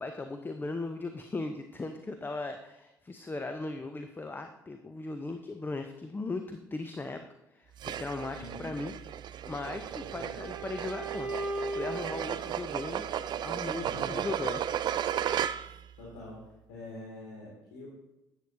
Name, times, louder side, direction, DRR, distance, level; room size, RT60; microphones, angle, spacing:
voice 1, 0.0-7.2 7.5-9.0 9.5-11.3 11.7-13.1 13.4-14.6, left 3 dB, 20° left, 7 dB, 0.7 m, -38 dB
sound 1, 7.8-15.9, right 10 dB, 45° right, 0.3 m, -35 dB
voice 2, 8.3-8.7 10.1-10.5 13.8-14.2 15.5-17.9, left 1 dB, 70° left, -6 dB, 2.3 m, -46 dB
sound 2, 9.4-13.4, right 2 dB, 15° right, 1.7 m, -39 dB
11.0 x 8.2 x 2.7 m, 0.93 s
figure-of-eight pair, 50°, 10 cm